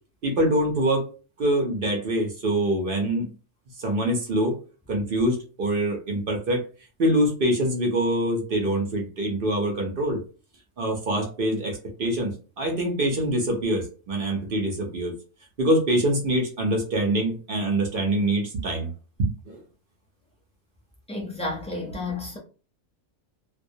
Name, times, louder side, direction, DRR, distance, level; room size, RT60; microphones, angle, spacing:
voice 1, 0.2-1.0 1.4-3.3 3.8-4.6 4.9-6.6 7.0-10.2 10.8-15.1 15.6-18.9 19.2-19.6, right 1 dB, 55° right, 0.7 m, -24 dB
voice 2, 21.1-22.4, left 2 dB, 5° left, 0.5 m, -31 dB
2.2 x 2.2 x 2.6 m
omnidirectional pair, 1.4 m